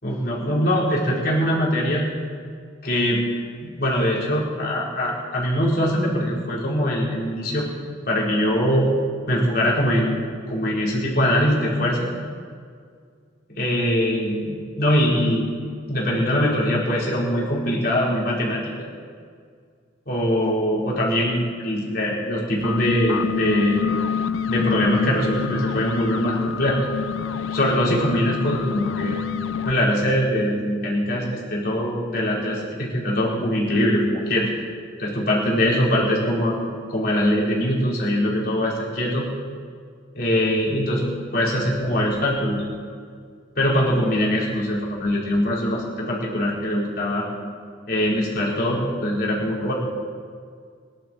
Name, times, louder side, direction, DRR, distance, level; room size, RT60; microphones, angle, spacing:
voice 1, 0.0-2.1 2.8-3.2 3.6-7.7 8.1-8.9 9.3-10.2 10.5-12.1 13.5-15.5 15.9-18.9 20.1-23.8 24.5-26.8 27.5-29.2 29.6-34.5 35.0-36.6 36.9-39.3 40.1-41.0 41.3-42.6 43.6-47.2 47.9-49.7, equal, 50° left, -5 dB, 4.4 m, -22 dB
sound 1, 22.5-29.7, left 8 dB, 85° left, 0.4 m, -27 dB
23.5 x 11.5 x 4.5 m, 2.1 s
head